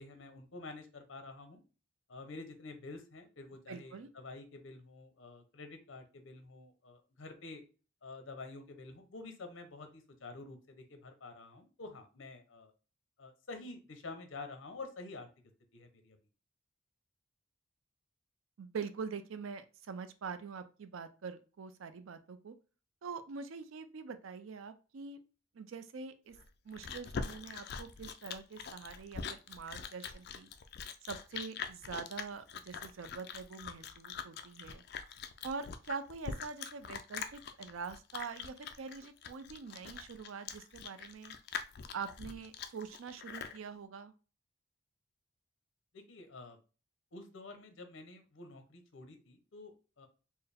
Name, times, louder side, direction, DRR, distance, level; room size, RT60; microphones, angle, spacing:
voice 1, 0.0-1.6 2.1-7.6 8.0-12.7 13.2-15.3 15.7-16.2 45.9-46.6 47.1-49.7 50.0-50.1, left 3 dB, 70° left, 6 dB, 0.7 m, -49 dB
voice 2, 3.7-4.1 18.6-22.6 23.0-25.2 25.5-26.4 26.6-30.5 31.0-34.8 35.4-41.4 41.9-44.1, right 5 dB, 80° right, 10 dB, 0.4 m, -44 dB
Chewing mastication, 26.3-43.6, left 6 dB, 50° left, 0.3 m, -43 dB
4.4 x 2.0 x 3.4 m, 0.35 s
head